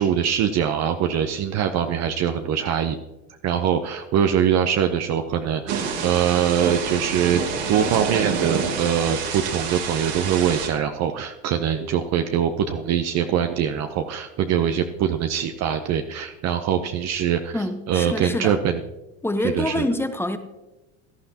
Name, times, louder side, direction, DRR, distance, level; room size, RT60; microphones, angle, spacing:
voice 1, 0.0-3.0 3.4-7.4 7.7-18.8 19.5-19.8, right 9 dB, 45° right, 0.8 m, -23 dB
Thunder / Rain, 5.7-10.7, right 6 dB, 65° right, 2.4 m, -27 dB
voice 2, 17.5-18.6 19.2-20.4, left 1 dB, 5° left, 1.0 m, -26 dB
17.0 x 11.5 x 2.9 m
hypercardioid pair, 95°, 36 cm